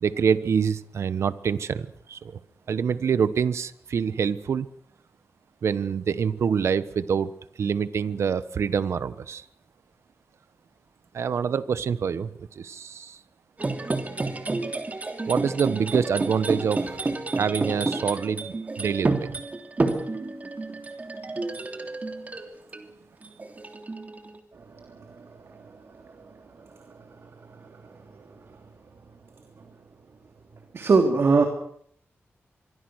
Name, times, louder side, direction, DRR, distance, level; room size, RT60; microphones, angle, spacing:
voice 1, 0.0-2.4 2.7-4.7 5.6-7.3 7.6-9.4 11.1-13.2 15.3-17.0 17.4-19.4, right 7 dB, 85° right, 15 dB, 1.2 m, -26 dB
sound 1, 13.6-22.9 23.2-24.4, right 3 dB, 35° right, 3.1 m, -30 dB
voice 2, 30.7-31.4, right 4 dB, 65° right, 4 dB, 3.3 m, -19 dB
26.5 x 22.5 x 6.4 m, 0.65 s
wide cardioid pair, 85°, 5 cm